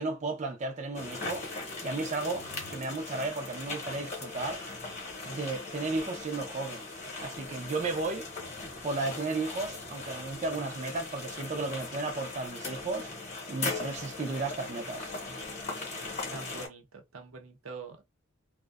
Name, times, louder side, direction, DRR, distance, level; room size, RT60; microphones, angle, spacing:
voice 1, 0.0-1.5 1.8-4.6 5.2-6.8 7.2-8.3 8.8-13.1 13.5-15.1, right 3 dB, 35° right, 0.4 m, -34 dB
sound 1, 0.9-16.7, left 3 dB, 35° left, 0.8 m, -39 dB
voice 2, 16.3-18.1, right 3 dB, 90° right, 0.7 m, -44 dB
2.6 x 2.1 x 2.3 m
head